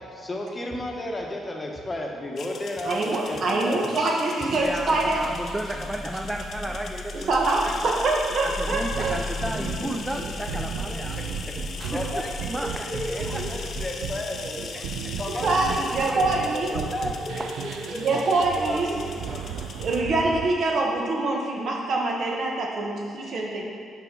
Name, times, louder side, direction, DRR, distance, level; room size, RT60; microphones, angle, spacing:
voice 1, 0.0-3.8 4.4-4.6 5.2-5.5 6.1-6.2 8.7-8.8 9.1-10.2 11.5-11.6 11.8-14.8 15.2-17.4 17.9-18.2 18.5-19.4, left 1 dB, 20° left, 0 dB, 1.0 m, -34 dB
sound 1, 2.4-20.0, left 5 dB, 60° left, 0.5 m, -40 dB
voice 2, 2.8-5.2 7.3-9.1 15.4-16.7 17.9-18.9 19.8-23.6, right 2 dB, 60° right, -1 dB, 1.2 m, -24 dB
sound 2, 4.5-14.4, left 3 dB, 40° right, 0.9 m, -38 dB
voice 3, 4.6-8.0 8.4-11.2 11.9-13.4 14.7-14.8 15.3-15.4 17.4-17.5, right 1 dB, 15° right, 2 dB, 0.4 m, -33 dB
sound 3, 8.9-20.5, right 7 dB, 85° right, 0.4 m, -35 dB
5.6 x 4.7 x 5.3 m, 2.2 s
cardioid pair, 90°, 0 cm